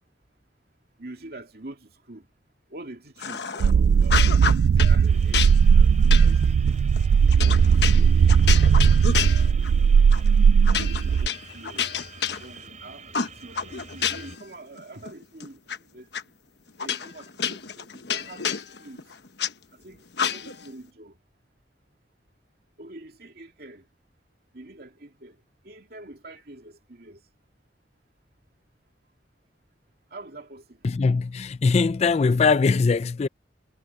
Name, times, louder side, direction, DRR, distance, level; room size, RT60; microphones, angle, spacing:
voice 1, 1.0-2.3 2.7-6.5 7.2-8.3 10.6-12.0 12.4-15.6 15.9-16.1 16.8-18.5 18.8-19.1 19.7-21.2 22.8-23.9 24.5-25.4 25.6-27.2 30.1-30.9, right 2 dB, 60° right, 2.5 m, -45 dB
sound 1, 3.2-3.7 4.0-5.0 5.3-9.8 10.1-10.3 10.7-12.8 13.1-14.4 14.8-15.8 16.1-16.2 16.8-19.5 20.1-20.7, left 7 dB, 70° left, 1.1 m, -29 dB
sound 2, 3.6-11.3, right 6 dB, 80° right, 0.3 m, -18 dB
sound 3, 5.1-14.4, right 4 dB, 40° right, 5.4 m, -46 dB
voice 2, 30.8-33.3, left 4 dB, 35° left, 0.4 m, -21 dB
head